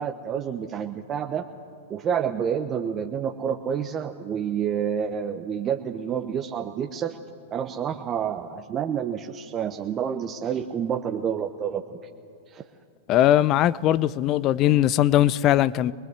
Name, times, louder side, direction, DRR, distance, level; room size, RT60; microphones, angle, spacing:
voice 1, 0.0-1.5 1.9-7.2 7.5-12.0 12.5-12.6, right 8 dB, 30° right, 1.0 m, -28 dB
voice 2, 13.1-15.9, left 12 dB, 40° left, 0.6 m, -20 dB
23.5 x 20.5 x 8.1 m
hypercardioid pair, 105°, 0 cm